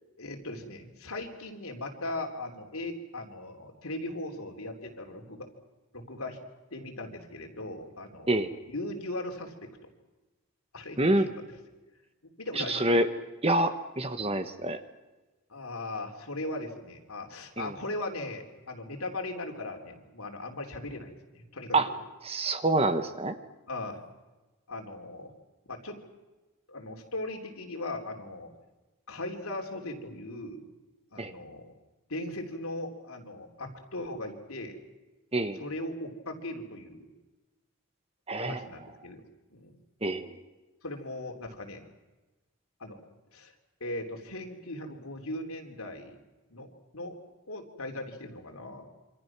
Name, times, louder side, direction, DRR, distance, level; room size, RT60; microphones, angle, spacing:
voice 1, 0.2-5.5 5.9-6.4 6.7-9.7 10.7-11.3 12.4-13.0 15.5-22.0 23.7-24.0 24.7-25.3 25.7-26.0 26.7-28.5 29.1-30.7 31.1-31.7 32.1-34.8 35.6-37.0 38.4-39.2 39.5-39.7 40.8-41.8 42.8-43.0 43.3-43.5 43.8-46.2 46.5-47.2 47.5-48.9, left 2 dB, 75° left, 3 dB, 3.5 m, -38 dB
voice 2, 11.0-11.3 12.5-13.1 13.4-14.8 17.6-17.7 21.7-21.9 22.2-23.4 31.2-31.3 35.3-35.6 38.3-38.6 40.0-40.3, right 2 dB, 25° right, 9 dB, 1.2 m, -26 dB
27.5 x 25.5 x 6.1 m, 1.2 s
head